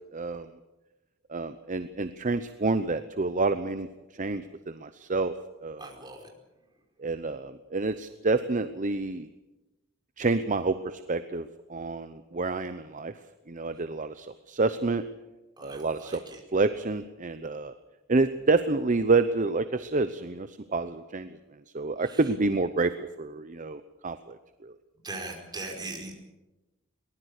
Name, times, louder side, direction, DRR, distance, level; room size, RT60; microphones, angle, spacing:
voice 1, 0.1-0.5 1.3-3.9 4.2-5.3 5.6-5.8 7.0-9.3 10.2-13.1 13.5-15.0 15.6-16.2 16.5-17.7 18.1-21.4 21.7-22.9 23.2-24.4 24.6-24.7, right 3 dB, 40° right, 11 dB, 0.8 m, -28 dB
voice 2, 5.8-6.3 15.6-16.4 22.0-22.2 25.0-26.1, right 2 dB, 20° right, 1 dB, 4.8 m, -40 dB
23.0 x 20.0 x 6.7 m, 1.0 s
head